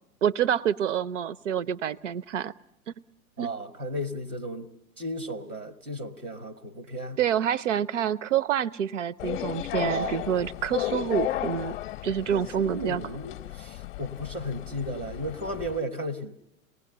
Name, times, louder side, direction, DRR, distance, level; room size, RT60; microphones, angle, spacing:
voice 1, 0.2-2.5 3.4-3.5 7.2-11.8 12.0-13.0, right 9 dB, 55° right, 0.8 m, -27 dB
voice 2, 3.4-4.7 5.0-7.2 9.8-10.3 12.3-16.3, equal, 85° right, 1.8 m, -34 dB
sound 1, 9.2-15.8, left 13 dB, 35° left, 0.8 m, -34 dB
27.5 x 19.0 x 6.8 m
figure-of-eight pair, 100°, 43 cm